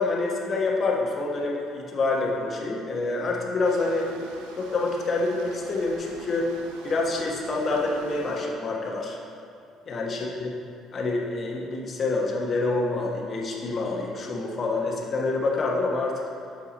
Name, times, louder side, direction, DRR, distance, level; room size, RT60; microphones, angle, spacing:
voice 1, 0.0-4.1 4.6-6.5 6.8-9.2 9.9-10.5 10.9-16.2, left 3 dB, 45° left, -2 dB, 1.2 m, -27 dB
sound 1, 3.6-8.6, right 3 dB, 90° right, 0.6 m, -46 dB
6.8 x 5.6 x 4.1 m, 2.4 s
supercardioid pair, 70°, 0 cm